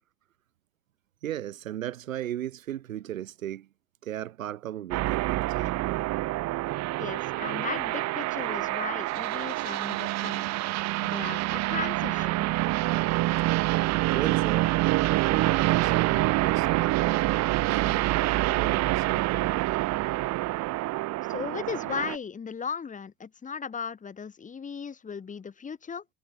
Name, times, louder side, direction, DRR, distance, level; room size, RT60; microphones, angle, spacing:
voice 1, 1.2-3.7 4.0-5.7 14.1-14.7 15.3-17.3 17.6-18.1 18.4-19.5, right 12 dB, 85° right, 1.6 m, -36 dB
sound 1, 4.9-22.2, right 18 dB, 45° right, 0.6 m, -26 dB
voice 2, 7.0-10.5 11.0-12.5 21.3-26.0, left 6 dB, 20° left, 0.9 m, -36 dB
hypercardioid pair, 70°, 39 cm